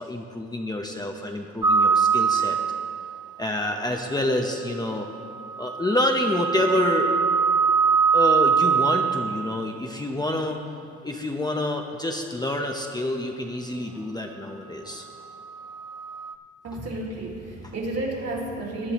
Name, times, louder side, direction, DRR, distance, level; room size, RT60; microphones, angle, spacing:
voice 1, 0.0-2.6 3.4-5.1 5.6-7.1 8.1-10.6 11.0-15.1, left 1 dB, 15° left, 2 dB, 0.8 m, -27 dB
sound 1, 1.6-3.3 5.3-9.6 15.6-16.3, right 6 dB, 15° right, 0.4 m, -23 dB
voice 2, 16.6-18.9, right 1 dB, 55° right, -3 dB, 2.3 m, -31 dB
17.0 x 9.9 x 3.0 m, 2.4 s
cardioid pair, 90°, 30 cm